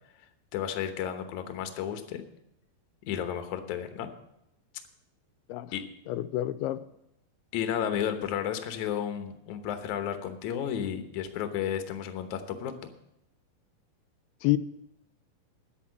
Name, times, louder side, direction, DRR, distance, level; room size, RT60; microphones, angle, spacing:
voice 1, 0.5-2.2 3.1-4.1 5.7-5.8 7.5-12.9, left 9 dB, 65° left, 7 dB, 2.1 m, -32 dB
voice 2, 6.1-6.8 14.4-14.6, left 16 dB, 90° left, 12 dB, 2.5 m, -28 dB
10.5 x 8.6 x 7.5 m, 0.82 s
omnidirectional pair, 4.4 m